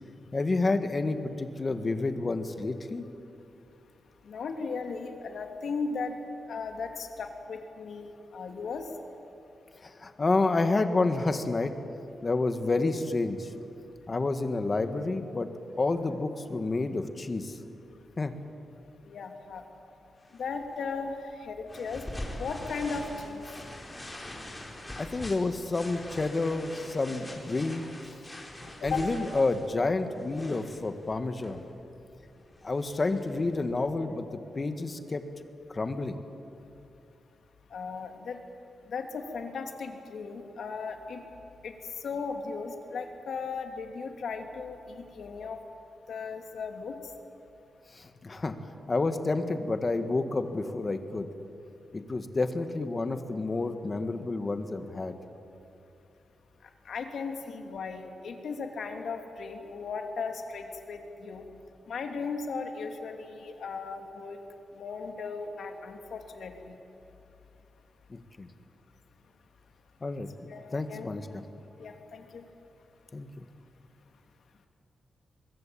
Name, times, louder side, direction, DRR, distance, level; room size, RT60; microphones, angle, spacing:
voice 1, 0.3-3.1 9.8-11.7 12.2-13.5 14.1-15.5 15.8-17.6 18.2-18.4 25.0-27.8 28.8-31.6 32.6-34.3 34.6-35.2 35.7-36.2 47.9-48.5 48.9-51.3 51.9-55.1 68.1-68.5 70.0-70.3 70.7-71.4 73.1-73.5, left 3 dB, 30° left, 8 dB, 1.7 m, -29 dB
voice 2, 4.3-6.1 6.5-8.8 19.1-19.6 20.4-22.0 22.4-23.4 28.8-29.1 37.7-38.4 38.9-41.2 41.6-41.7 42.0-45.6 46.1-46.9 56.9-61.4 61.9-64.4 64.7-66.8 70.5-71.1 71.8-72.4, left 4 dB, 65° left, 4 dB, 2.7 m, -36 dB
sound 1, 20.2-33.9, left 1 dB, 15° left, 4.5 m, -44 dB
24.0 x 21.5 x 8.7 m, 2.8 s
wide cardioid pair, 120°, 0 cm